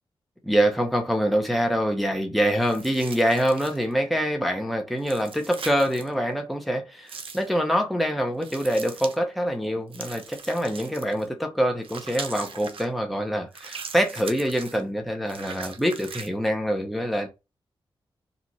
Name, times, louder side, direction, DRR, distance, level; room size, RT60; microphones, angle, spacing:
voice 1, 0.4-17.3, equal, ahead, 0.7 m, -25 dB
sound 1, 2.6-3.9 5.0-6.1 7.1-7.5 8.4-9.2 9.9-11.3 11.8-12.9 13.5-14.8 15.3-16.3, right 5 dB, 70° right, 0.5 m, -40 dB
2.9 x 2.4 x 4.0 m
wide cardioid pair, 95°, 9 cm